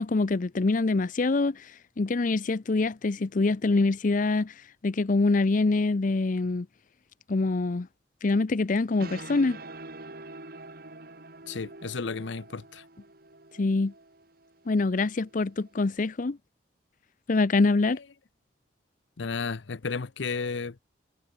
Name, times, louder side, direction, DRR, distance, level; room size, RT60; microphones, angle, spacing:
voice 1, 0.0-1.7 2.0-4.5 4.8-6.7 7.3-7.9 8.2-9.6 13.6-13.9 14.7-16.4 17.3-18.0, left 3 dB, 45° left, 0.6 m, -25 dB
sound 1, 8.7-15.9, right 2 dB, 55° right, 3.8 m, -46 dB
voice 2, 11.5-12.8 17.9-18.0 19.2-20.8, left 4 dB, 85° left, 0.7 m, -33 dB
head